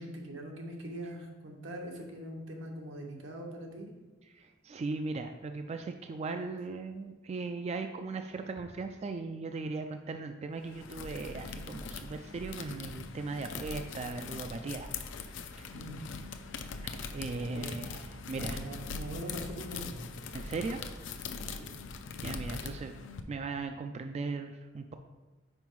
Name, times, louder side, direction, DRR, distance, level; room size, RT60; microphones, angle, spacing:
voice 1, 0.0-3.9 14.1-14.3 15.7-16.0 17.3-17.8 18.3-20.1 21.5-21.7, right 1 dB, 85° right, 1 dB, 1.2 m, -42 dB
voice 2, 4.3-14.9 15.6-15.7 16.8-18.6 20.3-20.8 22.2-23.0 23.3-24.9, right 3 dB, 35° right, 6 dB, 0.3 m, -38 dB
sound 1, 10.6-23.2, left 4 dB, 70° left, 0.5 m, -41 dB
5.4 x 4.9 x 4.6 m, 1.2 s
head